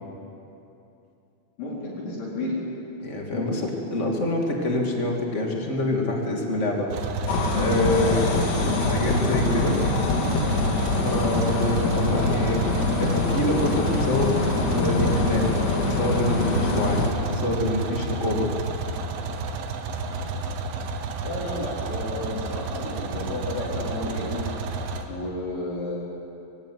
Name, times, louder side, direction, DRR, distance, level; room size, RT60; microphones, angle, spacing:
voice 1, 1.6-2.6 3.3-3.6 7.9-8.4 21.2-24.5 25.1-26.0, left 2 dB, 65° left, -6 dB, 6.5 m, -32 dB
voice 2, 3.0-6.9 7.5-8.3 8.6-9.8 11.0-14.4 14.7-15.5 15.8-18.5, left 1 dB, 30° left, 0 dB, 1.4 m, -26 dB
sound 1, 6.9-25.0, right 3 dB, 85° right, 3.9 m, -30 dB
sound 2, 7.3-17.1, left 3 dB, 90° left, 4.8 m, -24 dB
23.0 x 17.0 x 9.4 m, 2.8 s
omnidirectional pair, 5.7 m